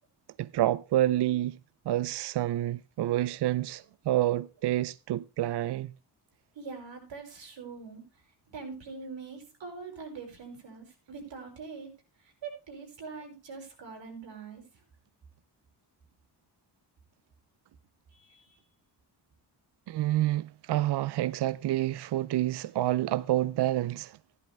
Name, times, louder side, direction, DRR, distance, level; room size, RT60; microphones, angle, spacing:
voice 1, 0.4-1.6 1.9-5.9 19.9-24.2, right 14 dB, 70° right, 0.5 m, -28 dB
voice 2, 6.5-11.9 12.2-14.6 18.1-18.6, right 4 dB, 90° right, 5.9 m, -43 dB
15.0 x 11.0 x 3.4 m
wide cardioid pair, 110°, 43 cm